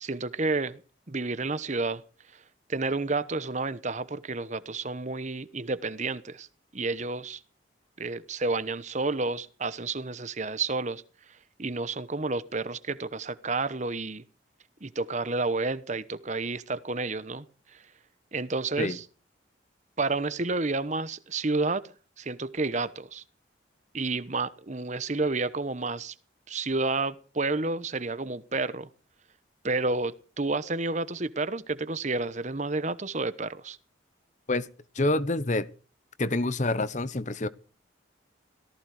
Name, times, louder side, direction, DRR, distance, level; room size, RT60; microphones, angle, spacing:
voice 1, 0.0-0.8 1.1-2.0 2.7-6.5 6.7-7.4 8.0-11.0 11.6-14.2 14.8-17.5 17.7-17.8 18.3-19.0 20.0-21.8 22.2-23.2 23.9-26.1 26.5-28.9 29.6-33.8, right 3 dB, 40° right, 1.0 m, -30 dB
voice 2, 34.9-35.7 36.2-37.5, left 2 dB, 40° left, 0.9 m, -27 dB
18.0 x 15.0 x 4.9 m
head